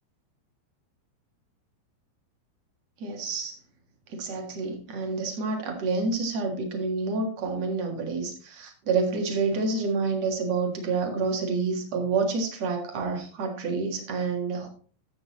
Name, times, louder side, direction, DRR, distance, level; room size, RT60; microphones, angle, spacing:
voice 1, 3.0-3.6 4.1-14.7, right 4 dB, 55° right, 2 dB, 1.9 m, -28 dB
13.5 x 7.9 x 3.1 m, 0.41 s
omnidirectional pair, 5.4 m